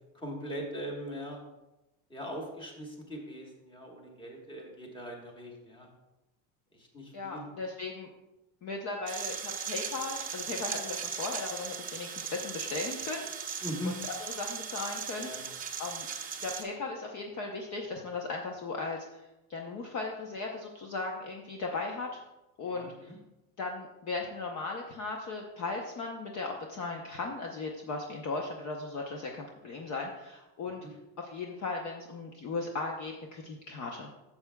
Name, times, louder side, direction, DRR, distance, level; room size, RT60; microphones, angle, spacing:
voice 1, 0.1-1.4 2.1-5.9 6.7-7.5 13.6-13.9 15.2-15.4 22.6-23.2 30.8-30.9, equal, 10° left, 0 dB, 1.3 m, -40 dB
voice 2, 7.1-8.1 8.6-16.1 16.4-22.2 22.6-23.1 23.6-30.8 31.2-34.1, left 3 dB, 35° left, 1 dB, 0.7 m, -37 dB
sound 1, 9.1-16.6, right 7 dB, 20° right, 0.6 m, -38 dB
12.5 x 7.1 x 2.2 m, 0.99 s
cardioid pair, 155°, 46 cm